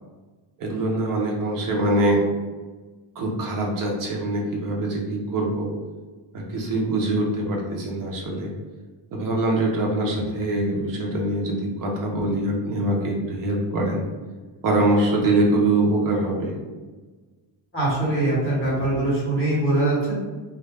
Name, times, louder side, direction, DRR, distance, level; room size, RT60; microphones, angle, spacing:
voice 1, 0.6-2.2 3.2-5.7 6.3-8.5 9.1-14.0 14.6-16.5, right 2 dB, 45° right, -1 dB, 0.6 m, -23 dB
voice 2, 17.7-20.1, right 2 dB, 25° left, -8 dB, 0.9 m, -22 dB
2.3 x 2.0 x 3.2 m, 1.3 s
wide cardioid pair, 175°, 47 cm